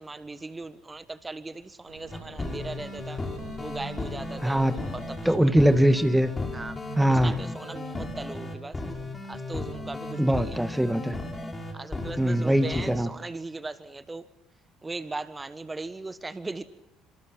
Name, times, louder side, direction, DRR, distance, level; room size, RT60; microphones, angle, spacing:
voice 1, 0.0-3.2 3.6-5.5 6.5-8.8 9.3-10.6 11.7-14.2 14.8-16.6, right 3 dB, 20° right, 12 dB, 1.6 m, -39 dB
sound 1, 1.9-7.2, right 2 dB, 75° right, 5.7 m, -48 dB
sound 2, 2.1-13.0, left 2 dB, 20° left, 6.2 m, -35 dB
voice 2, 4.4-4.8 5.2-6.3 7.0-7.4 10.2-11.1 12.2-13.1, equal, 5° right, 11 dB, 1.6 m, -22 dB
28.5 x 26.5 x 6.0 m, 0.79 s
figure-of-eight pair, 55°, 0 cm